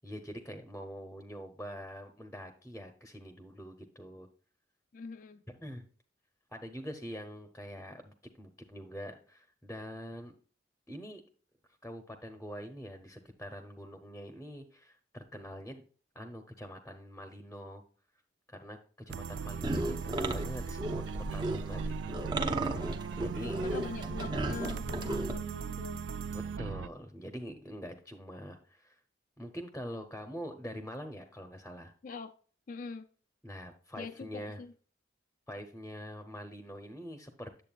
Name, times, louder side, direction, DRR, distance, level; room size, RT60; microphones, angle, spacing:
voice 1, 0.0-4.3 5.5-5.8 6.5-10.3 10.9-11.2 11.8-15.8 16.1-17.8 18.5-18.8 19.1-22.3 23.2-23.8 26.6-29.0 29.4-31.9 33.4-34.6 35.5-37.6, equal, 10° left, 0.7 m, -44 dB
voice 2, 4.9-5.4 23.4-26.0 32.0-32.3 32.7-33.1 34.0-34.7, left 4 dB, 45° left, 0.4 m, -43 dB
sound 1, 19.1-26.9, right 6 dB, 75° right, 0.3 m, -39 dB
sound 2, 19.6-25.3, right 1 dB, 25° right, 0.6 m, -35 dB
9.0 x 7.5 x 2.3 m
head